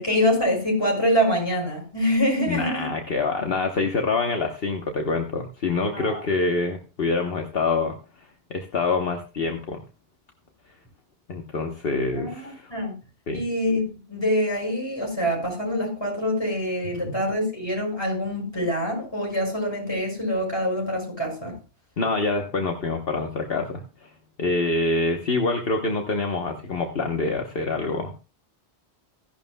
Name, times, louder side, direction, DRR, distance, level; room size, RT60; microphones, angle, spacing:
voice 1, 0.0-2.9 5.9-6.2 12.1-12.9 13.3-21.5, equal, 25° left, 0 dB, 6.8 m, -25 dB
voice 2, 2.5-9.8 11.3-12.7 13.3-13.4 16.9-17.1 22.0-24.1 24.4-28.2, left 3 dB, 65° left, 4 dB, 1.3 m, -26 dB
16.5 x 11.0 x 2.3 m, 0.33 s
omnidirectional pair, 1.1 m